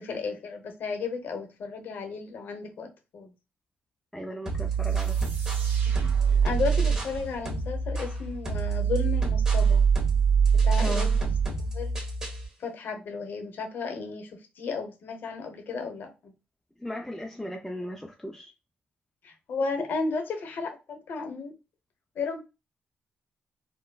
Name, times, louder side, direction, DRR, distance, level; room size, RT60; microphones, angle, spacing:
voice 1, 0.0-3.3 5.9-9.8 10.6-11.3 11.7-11.9 12.6-14.3 14.6-16.3 19.2-21.5 22.2-22.4, left 4 dB, 65° left, 0.9 m, -34 dB
voice 2, 4.1-5.3 10.8-11.1 16.8-18.5, left 1 dB, 5° left, 0.4 m, -37 dB
sound 1, 4.5-7.2 7.5-12.5, right 6 dB, 20° right, 1.6 m, -25 dB
sound 2, 4.8-9.4, right 3 dB, 55° right, 1.6 m, -44 dB
4.5 x 2.2 x 2.3 m
cardioid pair, 115°, 4 cm